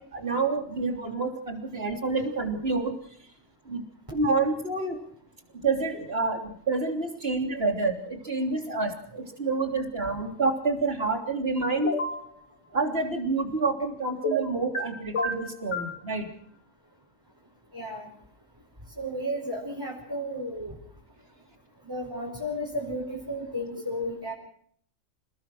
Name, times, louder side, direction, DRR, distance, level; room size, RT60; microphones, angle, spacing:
voice 1, 0.0-3.0 3.7-3.8 4.1-5.0 5.6-12.0 12.7-16.3, right 3 dB, 50° right, 3 dB, 3.5 m, -28 dB
sound 1, 11.8-12.2 14.2-14.8 15.1-15.9, left 1 dB, 65° left, 4.1 m, -28 dB
voice 2, 17.7-18.1 19.0-20.8 21.8-24.3, equal, 15° right, -3 dB, 5.2 m, -33 dB
28.0 x 19.0 x 6.3 m, 0.63 s
omnidirectional pair, 1.3 m